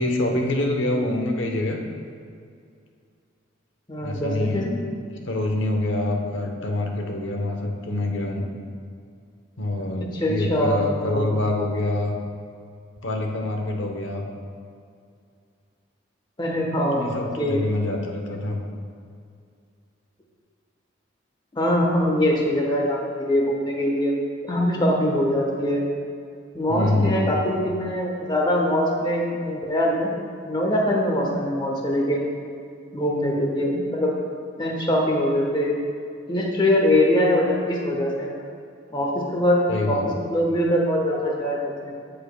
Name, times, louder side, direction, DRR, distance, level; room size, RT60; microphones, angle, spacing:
voice 1, 0.0-1.8 4.0-4.7 5.2-8.5 9.6-12.2 13.0-14.2 16.9-18.6 26.7-27.3 39.7-40.0, left 2 dB, 70° left, 2 dB, 0.9 m, -25 dB
voice 2, 3.9-4.8 10.1-11.4 16.4-17.6 21.6-24.1 24.4-25.8 26.5-30.1 30.4-32.2 32.9-34.1 34.6-35.8 36.3-38.3 38.9-41.9, left 1 dB, 25° left, -1 dB, 1.1 m, -23 dB
15.0 x 5.1 x 2.2 m, 2.3 s
head